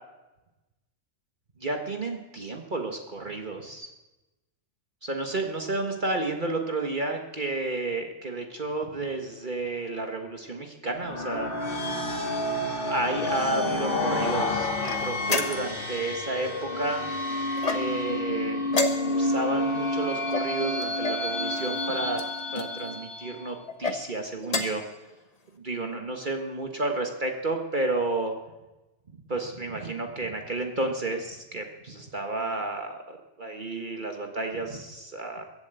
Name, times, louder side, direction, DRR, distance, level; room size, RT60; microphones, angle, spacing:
voice 1, 1.6-3.9 5.0-11.5 12.8-17.0 17.7-18.7 19.0-22.2 22.5-24.8 25.6-28.3 29.3-35.4, right 2 dB, 45° right, 3 dB, 1.5 m, -31 dB
sound 1, 11.0-23.5, left 1 dB, 50° left, 2.0 m, -29 dB
sound 2, 14.8-15.9 17.6-18.2 18.7-19.4 20.3-21.3 22.1-22.7 23.6-24.0 24.4-24.9, left 3 dB, 35° left, 1.2 m, -30 dB
23.0 x 7.6 x 8.1 m, 1.0 s
omnidirectional pair, 1.2 m